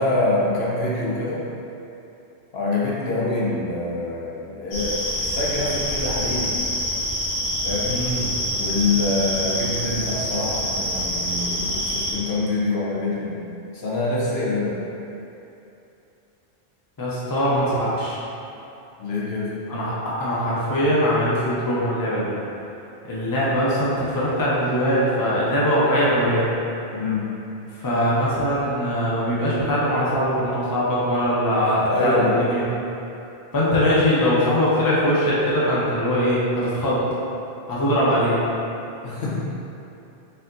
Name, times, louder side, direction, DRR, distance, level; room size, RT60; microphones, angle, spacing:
voice 1, 0.0-1.4 2.5-6.6 7.6-8.0 8.6-13.4 13.7-14.8 19.0-19.5 26.9-27.3 31.5-32.5 39.0-39.4, left 2 dB, 70° left, -6 dB, 1.0 m, -25 dB
sound 1, 4.7-12.1, equal, 90° left, 1.5 m, -26 dB
voice 2, 7.9-8.3 17.0-18.2 19.7-22.3 23.0-26.5 27.8-32.6 33.5-37.0 37.7-38.4, equal, 25° left, -7 dB, 0.6 m, -21 dB
4.3 x 2.7 x 3.7 m, 2.8 s
omnidirectional pair, 1.1 m